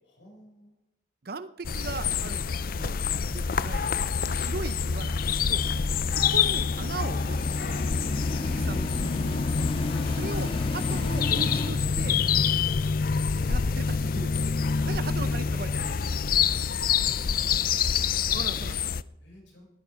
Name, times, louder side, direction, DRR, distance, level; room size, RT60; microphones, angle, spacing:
voice 1, 0.0-0.7 19.0-19.6, equal, 80° left, 0 dB, 6.6 m, -54 dB
voice 2, 1.2-3.9 4.3-5.6 6.1-7.8 8.4-9.4 10.1-12.2 13.5-16.6 18.3-18.8, right 3 dB, 55° right, 12 dB, 0.7 m, -39 dB
sound 1, 1.6-19.0, left 6 dB, 50° left, 0.5 m, -26 dB
sound 2, 5.3-11.7, left 1 dB, 30° left, 1.5 m, -37 dB
19.5 x 13.0 x 5.2 m, 0.92 s
head